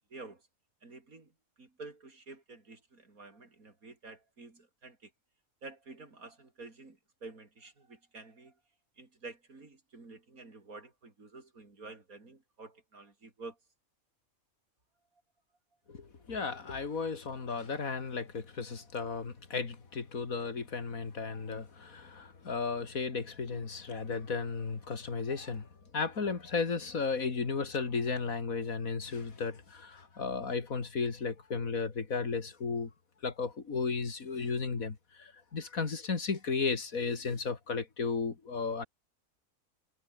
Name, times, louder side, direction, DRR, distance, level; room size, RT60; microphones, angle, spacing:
voice 1, 0.1-0.5 0.8-1.3 1.6-5.1 5.6-8.5 9.0-13.6 18.7-18.9, right 3 dB, 80° right, 4.3 m, -50 dB
voice 2, 15.9-25.7 25.9-32.9 33.2-38.9, left 4 dB, 75° left, 2.8 m, -34 dB
omnidirectional pair, 1.5 m